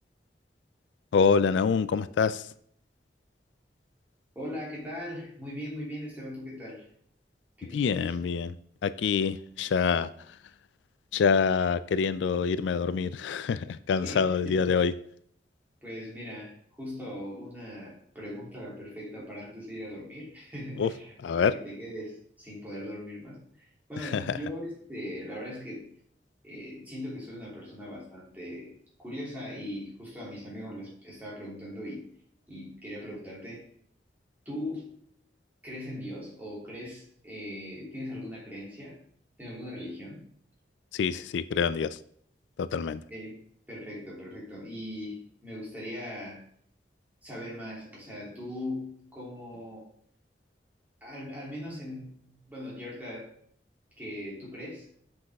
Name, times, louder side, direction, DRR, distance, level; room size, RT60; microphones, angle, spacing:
voice 1, 1.1-2.5 7.7-8.6 8.8-10.4 11.1-15.0 20.8-20.9 21.2-21.5 24.0-24.4 40.9-42.0 42.6-43.0, left 6 dB, 90° left, 15 dB, 0.3 m, -26 dB
voice 2, 4.3-6.9 7.6-8.1 14.0-14.6 15.8-25.9 26.4-28.7 29.0-32.1 32.5-33.7 34.4-35.0 35.6-39.0 39.4-40.2 43.1-43.4 43.7-46.4 47.2-49.9 51.0-53.3 54.0-54.9, left 1 dB, 10° right, -6 dB, 2.9 m, -40 dB
7.6 x 5.9 x 3.6 m, 0.64 s
head